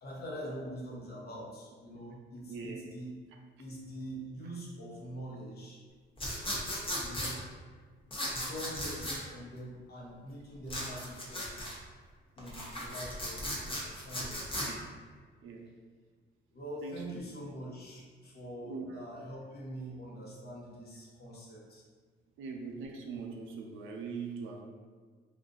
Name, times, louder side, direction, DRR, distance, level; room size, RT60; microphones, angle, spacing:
voice 1, 0.0-3.1 3.6-5.8 7.0-7.4 8.2-11.7 12.4-14.5 16.5-21.8, right 1 dB, 55° left, -5 dB, 1.1 m, -44 dB
voice 2, 2.5-2.8 13.0-13.2 14.6-14.8 15.4-15.6 16.8-17.0 18.6-19.0 22.4-24.6, right 5 dB, 85° right, 1 dB, 0.5 m, -41 dB
sound 1, 6.2-7.3 8.1-9.2 10.7-11.8 12.4-14.7, equal, 25° left, 0.9 m, -36 dB
2.6 x 2.4 x 3.7 m, 1.5 s
cardioid pair, 90°, 20 cm